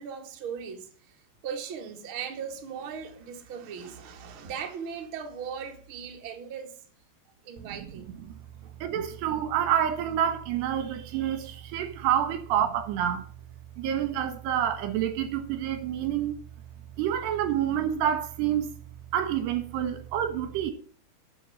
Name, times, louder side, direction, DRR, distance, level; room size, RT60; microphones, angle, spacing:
voice 1, 0.0-6.8 7.4-8.1 8.6-8.8, right 7 dB, 40° right, 2.0 m, -38 dB
voice 2, 8.8-13.2 13.8-16.4 17.0-18.7 19.1-20.7, right 10 dB, 75° right, 3.1 m, -28 dB
11.0 x 7.4 x 8.5 m
omnidirectional pair, 5.1 m